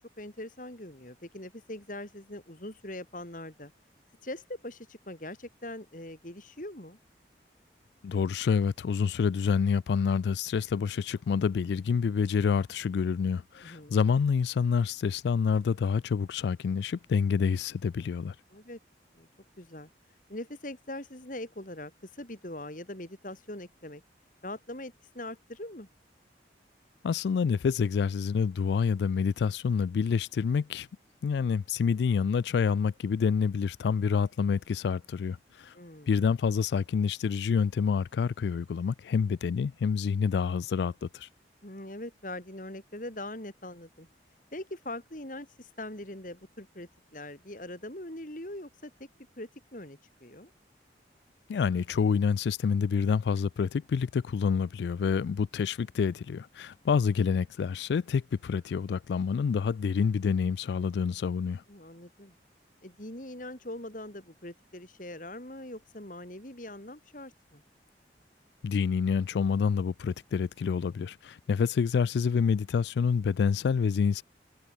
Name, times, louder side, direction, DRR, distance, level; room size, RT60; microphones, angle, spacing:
voice 1, 0.0-3.7 4.2-7.0 13.5-14.0 18.5-18.8 19.2-19.3 19.6-19.9 20.3-24.0 24.4-25.9 35.7-36.1 41.6-44.1 44.5-48.9 49.4-50.5 61.7-62.3 62.8-67.6, left 1 dB, 45° left, 4.0 m, -42 dB
voice 2, 8.0-18.3 27.0-30.9 31.2-35.7 36.1-41.3 51.5-61.6 68.6-74.2, left 6 dB, 75° left, 0.3 m, -27 dB
head